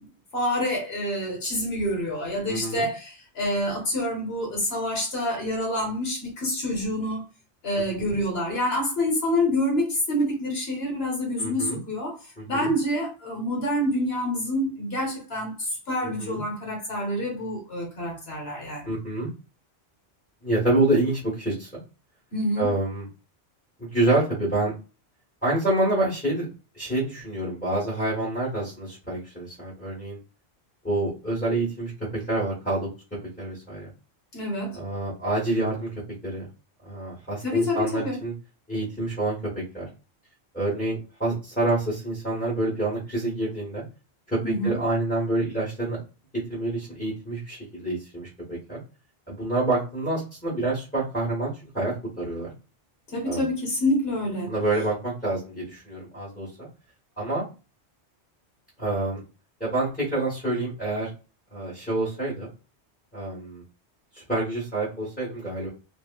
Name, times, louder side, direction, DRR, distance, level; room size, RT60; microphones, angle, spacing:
voice 1, 0.3-7.2 7.6-12.2 12.5-18.9 22.3-22.7 34.3-34.8 37.4-38.2 44.4-44.8 53.1-54.5, left 1 dB, 70° left, 1.2 m, -27 dB
voice 2, 2.5-2.9 8.0-8.1 11.4-11.8 12.4-12.7 16.0-16.4 18.8-19.3 20.4-21.7 22.6-23.1 23.8-24.7 25.4-26.4 26.7-30.2 30.8-32.9 33.4-33.9 34.7-35.9 36.2-36.5 36.8-38.3 38.7-39.4 39.7-39.9 40.5-43.8 44.3-46.0 46.5-48.8 49.3-52.5 53.2-53.4 54.5-56.7 57.2-57.4 58.8-59.2 59.6-61.1 61.5-62.5 63.1-63.6 64.1-65.7, right 2 dB, 10° left, 1.2 m, -27 dB
3.0 x 2.6 x 2.2 m
omnidirectional pair, 1.1 m